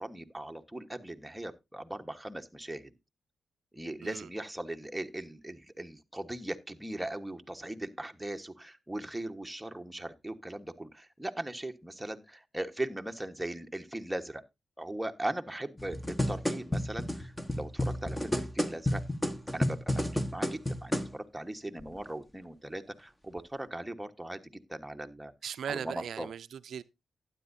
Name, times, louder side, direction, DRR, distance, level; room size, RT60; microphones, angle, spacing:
voice 1, 0.0-2.9 3.7-14.4 14.8-19.0 19.5-25.3 25.7-26.3, right 1 dB, 5° right, 1.3 m, -39 dB
sound 1, 15.8-21.1 21.8-21.9, left 1 dB, 10° left, 1.3 m, -31 dB
voice 2, 25.4-26.8, right 8 dB, 75° right, 0.4 m, -38 dB
12.0 x 9.8 x 2.7 m
cardioid pair, 65°, 0 cm